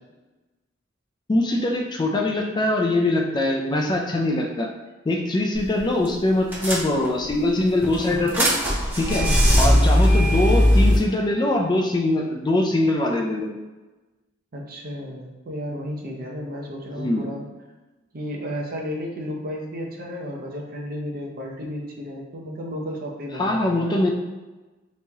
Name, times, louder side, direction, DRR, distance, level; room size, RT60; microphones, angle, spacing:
voice 1, 1.3-4.7 5.1-8.5 8.9-9.2 9.6-13.5 17.0-17.2 23.4-24.1, left 1 dB, 20° left, 1 dB, 0.3 m, -22 dB
sound 1, 5.5-5.8 6.0-6.1 6.5-7.3 7.8-11.0, equal, 10° right, 0.7 m, -18 dB
voice 2, 9.1-9.4 9.6-9.9 14.5-17.5 18.1-24.1, equal, 50° right, -1 dB, 0.6 m, -33 dB
3.0 x 2.8 x 3.4 m, 1.2 s
head